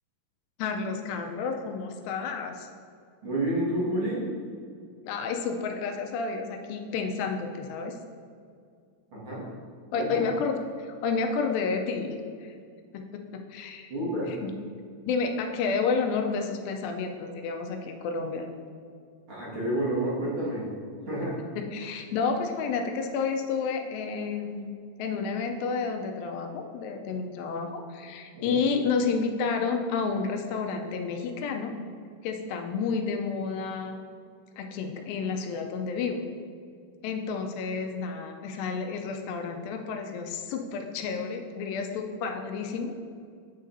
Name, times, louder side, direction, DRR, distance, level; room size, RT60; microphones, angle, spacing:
voice 1, 0.6-2.7 5.1-8.0 9.9-12.1 12.4-12.5 12.9-13.0 13.5-13.9 14.4-14.5 15.0-18.5 21.7-24.7 25.0-31.7 32.2-34.0 34.6-36.2 37.0-42.9, left 5 dB, 85° left, 4 dB, 2.4 m, -30 dB
voice 2, 3.2-4.3 9.1-9.5 9.9-10.2 13.9-14.3 19.3-20.7 21.1-21.4 28.3-28.6, right 1 dB, 45° right, -8 dB, 2.2 m, -29 dB
8.9 x 6.5 x 2.6 m, 2.2 s
omnidirectional pair, 4.0 m